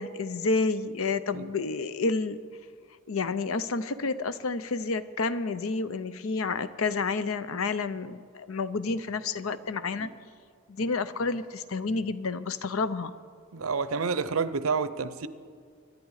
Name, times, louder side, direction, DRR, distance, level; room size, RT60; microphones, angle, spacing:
voice 1, 0.0-2.4 3.1-10.1 10.7-13.1, left 4 dB, 75° left, 0.6 m, -30 dB
voice 2, 13.5-15.3, right 5 dB, 80° right, 0.7 m, -29 dB
25.5 x 10.5 x 4.8 m
head